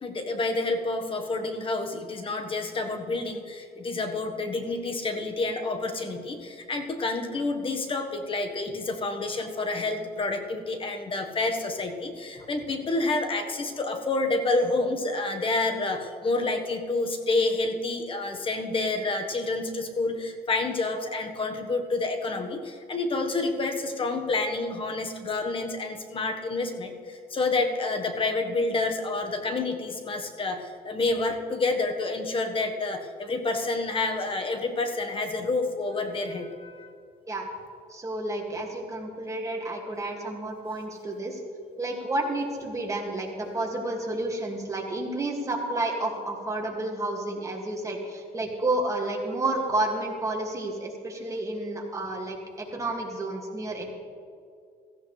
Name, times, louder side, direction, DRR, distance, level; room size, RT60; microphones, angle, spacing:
voice 1, 0.0-36.9, left 3 dB, 30° left, 5 dB, 1.4 m, -29 dB
voice 2, 37.9-41.4 41.8-53.9, right 2 dB, 20° right, 0 dB, 2.2 m, -30 dB
16.5 x 14.0 x 3.3 m, 2.3 s
cardioid pair, 110°, 17 cm